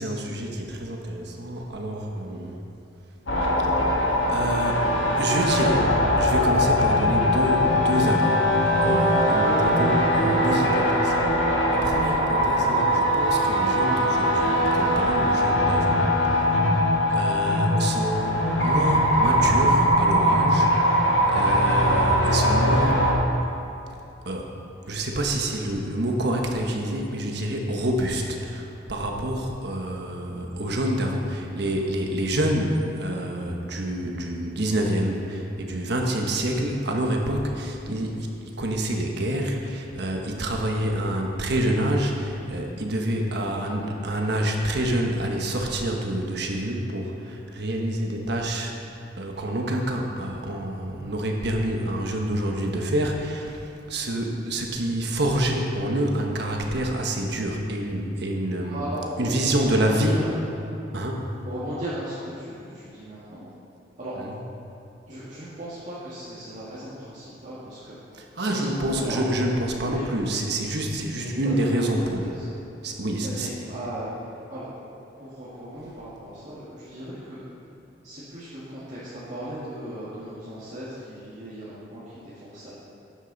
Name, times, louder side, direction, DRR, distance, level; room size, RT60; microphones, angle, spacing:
voice 1, 0.0-2.6 4.3-4.9 5.1-8.5 8.8-11.4 11.7-16.0 16.2-16.5 17.1-23.0 24.2-24.5 24.8-48.7 49.2-58.8 59.2-60.2 60.9-61.2 64.2-64.3 68.1-72.3 72.8-73.5, right 1 dB, 65° right, 1 dB, 1.2 m, -27 dB
sound 1, 3.3-23.1, equal, 80° left, 1.8 m, -21 dB
voice 2, 58.6-60.3 61.4-63.4 64.0-64.2 65.1-68.0 68.4-69.2 69.8-70.1 71.2-72.0 72.2-72.5 73.2-74.1 74.5-74.7 75.2-77.4 78.0-82.7, right 1 dB, 40° right, -11 dB, 2.1 m, -37 dB
13.0 x 9.9 x 4.1 m, 2.9 s
head